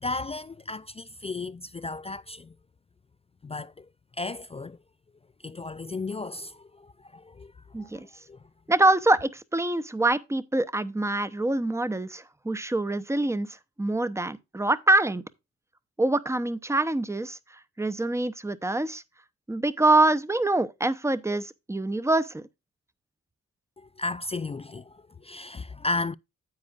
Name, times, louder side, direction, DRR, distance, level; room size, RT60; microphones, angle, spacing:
voice 1, 0.0-2.5 3.4-3.9 4.2-4.8 5.4-7.5 7.8-8.4 23.8-26.1, left 3 dB, 20° left, 0.3 m, -34 dB
voice 2, 7.7-8.1 8.7-13.5 13.8-15.2 16.0-17.4 17.8-19.0 19.5-22.4, right 2 dB, 10° right, 0.7 m, -25 dB
9.7 x 8.4 x 2.4 m
cardioid pair, 85°, 29 cm